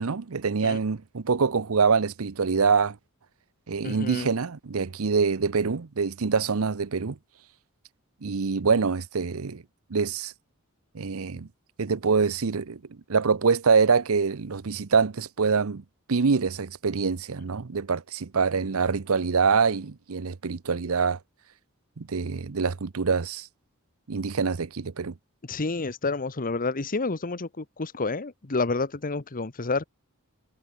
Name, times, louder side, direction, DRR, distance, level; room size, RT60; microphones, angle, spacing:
voice 1, 0.0-3.0 3.7-7.2 8.2-9.6 9.9-10.3 10.9-11.5 11.8-12.8 13.1-15.8 16.1-21.2 22.0-23.5 24.1-25.1, right 5 dB, 70° right, 0.7 m, -25 dB
voice 2, 3.8-4.3 25.5-29.9, left 3 dB, 40° left, 1.1 m, -29 dB
head